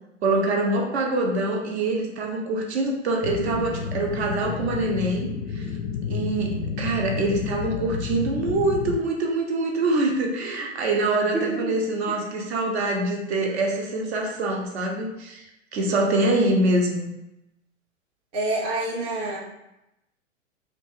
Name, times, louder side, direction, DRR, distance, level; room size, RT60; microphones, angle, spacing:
voice 1, 0.2-5.3 5.5-5.6 6.1-15.5 15.7-17.1, right 2 dB, 55° right, 0 dB, 0.7 m, -25 dB
sound 1, 3.2-9.0, left 7 dB, 50° left, 0.4 m, -30 dB
voice 2, 11.3-11.8 12.1-12.2 18.3-19.4, right 2 dB, 15° right, -5 dB, 0.4 m, -27 dB
2.9 x 2.2 x 3.1 m, 0.88 s
figure-of-eight pair, 100°, 38 cm